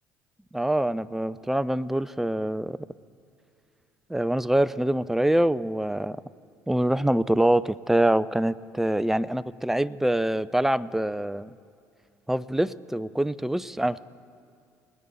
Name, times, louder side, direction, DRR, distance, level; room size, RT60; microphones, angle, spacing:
voice 1, 0.5-2.8 4.1-6.2 6.7-11.5 12.3-14.0, right 1 dB, 5° right, 16 dB, 0.3 m, -25 dB
21.5 x 9.3 x 4.1 m, 2.4 s
figure-of-eight pair, 55°, 9 cm